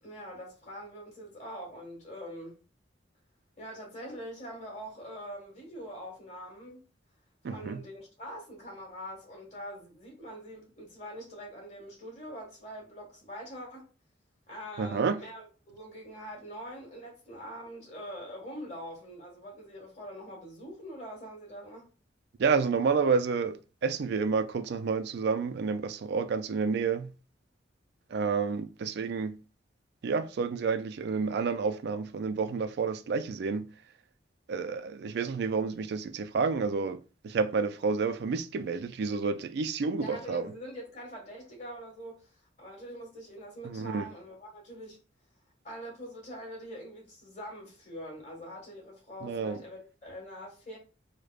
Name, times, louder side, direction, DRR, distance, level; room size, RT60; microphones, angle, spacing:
voice 1, 0.0-2.6 3.6-6.8 7.4-13.8 14.5-21.9 40.0-45.0 45.6-50.8, equal, 40° left, 1.6 m, -44 dB
voice 2, 7.4-7.8 14.8-15.2 22.4-27.1 28.1-29.4 30.0-33.7 34.5-40.5 43.6-44.1 49.2-49.6, right 5 dB, 60° right, 0.3 m, -30 dB
4.9 x 2.1 x 2.3 m
head